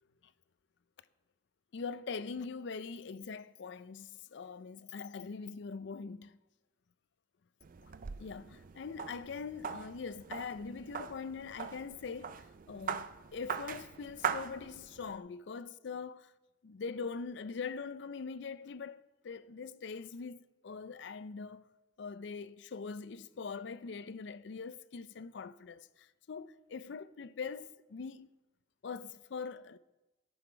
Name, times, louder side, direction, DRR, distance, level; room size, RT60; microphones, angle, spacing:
voice 1, 1.7-6.4 7.8-7.9 8.2-16.2 16.6-21.7 22.0-28.3 28.8-29.8, left 5 dB, 65° left, 0.4 m, -42 dB
sound 1, 7.6-15.2, right 7 dB, 45° right, 0.4 m, -41 dB
17.0 x 6.4 x 5.0 m
head